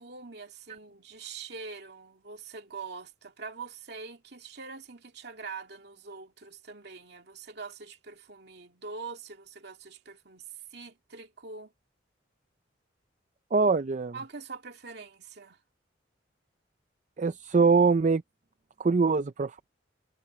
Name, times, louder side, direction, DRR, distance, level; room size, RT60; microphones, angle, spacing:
voice 1, 0.0-10.4 10.7-11.7 14.1-15.6, right 4 dB, 60° right, 2.5 m, -44 dB
voice 2, 13.5-14.1 17.2-18.2 18.8-19.8, right 4 dB, 40° right, 0.4 m, -23 dB
head